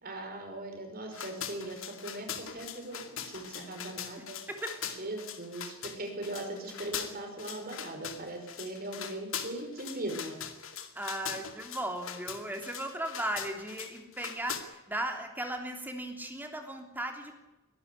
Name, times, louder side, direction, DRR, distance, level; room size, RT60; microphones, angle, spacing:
voice 1, 0.0-3.0 3.2-4.4 5.0-10.4, right 1 dB, 45° right, 4 dB, 5.5 m, -39 dB
sound 1, 1.1-14.6, left 8 dB, 70° left, 2.3 m, -41 dB
voice 2, 10.9-17.4, right 1 dB, 10° right, 4 dB, 3.1 m, -36 dB
23.0 x 12.0 x 9.7 m, 1.0 s
head